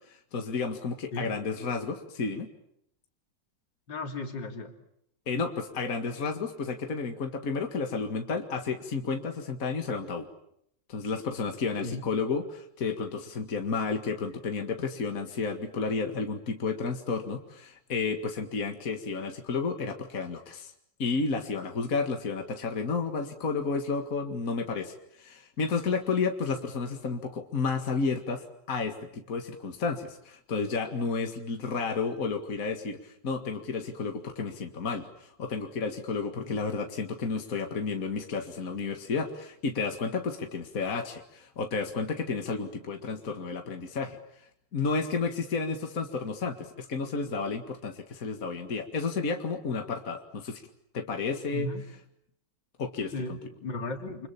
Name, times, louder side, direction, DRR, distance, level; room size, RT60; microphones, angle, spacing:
voice 1, 0.1-2.5 5.3-10.3 10.9-20.7 21.0-44.2 44.7-50.6 50.9-51.7 52.8-53.4, left 4 dB, 50° left, 4 dB, 2.3 m, -31 dB
voice 2, 3.9-4.7 11.8-12.0 36.3-36.7 51.5-51.9 53.1-54.3, left 2 dB, 75° left, 4 dB, 3.6 m, -36 dB
29.0 x 26.0 x 7.3 m, 0.73 s
omnidirectional pair, 2.0 m